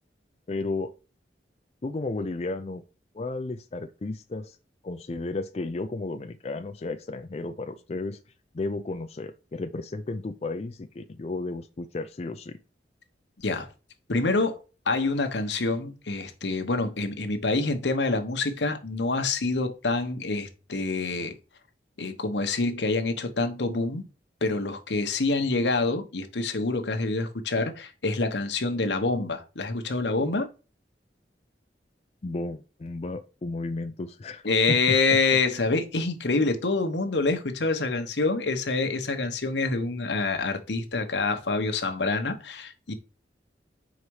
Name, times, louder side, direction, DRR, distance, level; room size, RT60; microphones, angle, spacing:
voice 1, 0.5-0.9 1.8-2.8 3.1-4.6 4.8-8.2 8.5-12.6 32.2-35.0, left 2 dB, 35° left, 0.4 m, -33 dB
voice 2, 13.4-13.7 14.1-14.6 14.9-21.3 22.0-24.0 24.4-30.5 34.4-42.9, left 3 dB, 85° left, 1.0 m, -26 dB
4.9 x 4.1 x 4.7 m
head